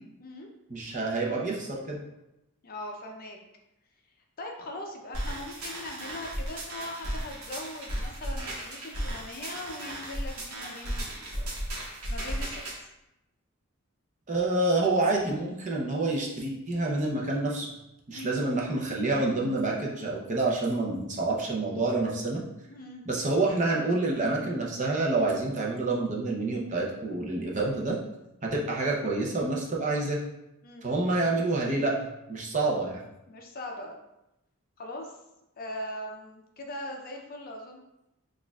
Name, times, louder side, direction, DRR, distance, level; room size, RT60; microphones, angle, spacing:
voice 1, 0.7-2.0 14.3-17.7 18.1-22.4 23.1-28.0 28.4-30.2 30.8-31.9 32.3-33.0, right 2 dB, 35° right, -3 dB, 0.6 m, -28 dB
voice 2, 2.6-3.4 4.4-11.5 12.1-12.9 18.1-18.4 22.7-23.0 30.6-31.1 33.3-33.9 34.8-35.2 35.6-37.8, left 1 dB, 40° left, 1 dB, 0.5 m, -40 dB
sound 1, 5.1-12.8, right 1 dB, 75° right, 1.0 m, -35 dB
6.3 x 2.4 x 2.3 m, 0.90 s
head